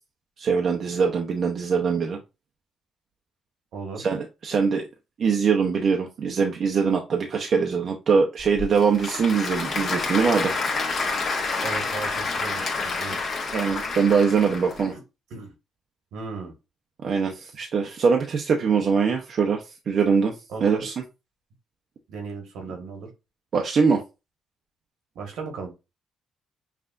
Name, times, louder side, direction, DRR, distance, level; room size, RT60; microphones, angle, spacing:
voice 1, 0.4-2.2 4.0-4.9 5.2-10.5 13.5-14.9 17.0-20.3 20.6-20.9 23.5-24.0, right 5 dB, 55° right, 2 dB, 0.6 m, -22 dB
voice 2, 3.7-4.1 11.6-13.2 15.3-15.5 16.1-16.5 20.5-20.9 22.1-23.1 25.1-25.7, right 4 dB, 80° right, 3 dB, 1.3 m, -36 dB
Applause / Crowd, 8.4-14.9, left 4 dB, 50° left, 1.2 m, -28 dB
5.6 x 2.4 x 2.4 m, 0.26 s
cardioid pair, 90°, 0 cm